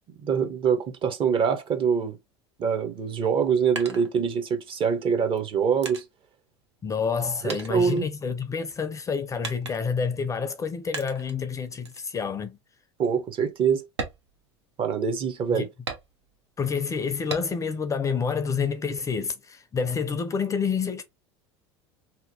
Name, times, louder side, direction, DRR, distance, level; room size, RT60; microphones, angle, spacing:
voice 1, 0.1-2.2 2.6-6.0 7.4-8.1 13.0-13.8 14.8-15.7, right 6 dB, 35° right, 0.7 m, -24 dB
sound 1, 3.8-4.7 5.4-7.2 7.5-8.7 9.4-10.1 10.9-11.4 11.9-12.1 12.6-12.7 13.1-13.3 13.9-15.1 15.9-16.5 17.3-17.8 18.2-19.1, right 4 dB, 90° right, 0.6 m, -38 dB
voice 2, 6.8-12.6 15.5-15.6 16.6-21.0, left 5 dB, 20° left, 0.4 m, -28 dB
2.8 x 2.1 x 2.7 m
hypercardioid pair, 80°, 14 cm